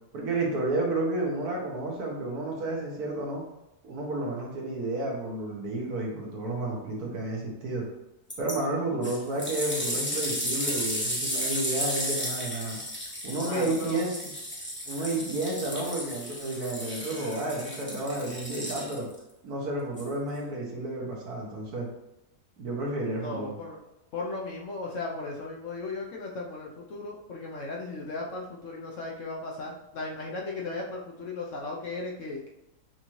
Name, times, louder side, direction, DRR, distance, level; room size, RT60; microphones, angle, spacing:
voice 1, 0.1-3.4 3.8-7.8 8.4-12.8 13.2-14.3 14.9-19.1 19.4-21.9 22.6-23.6, right 2 dB, 70° right, -2 dB, 1.6 m, -31 dB
sound 1, 8.3-8.5 9.0-19.2 20.0-20.1, equal, 10° left, 0.8 m, -33 dB
voice 2, 13.4-14.0 23.2-23.8 24.1-32.5, left 3 dB, 60° left, -2 dB, 0.9 m, -36 dB
5.9 x 2.7 x 3.1 m, 0.91 s
omnidirectional pair, 1.7 m